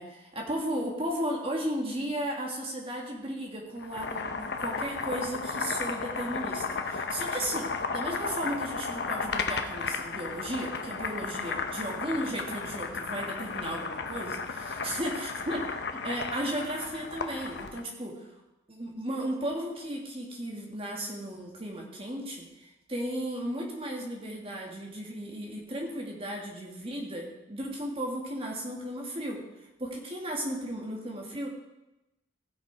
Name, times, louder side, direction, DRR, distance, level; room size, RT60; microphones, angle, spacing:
voice 1, 0.0-15.7 16.0-18.3 18.7-29.4 29.8-31.5, right 1 dB, 30° right, -1 dB, 1.8 m, -35 dB
Boiling, 3.8-17.8, left 4 dB, 55° left, 0.8 m, -34 dB
16.0 x 6.4 x 5.0 m, 0.97 s
head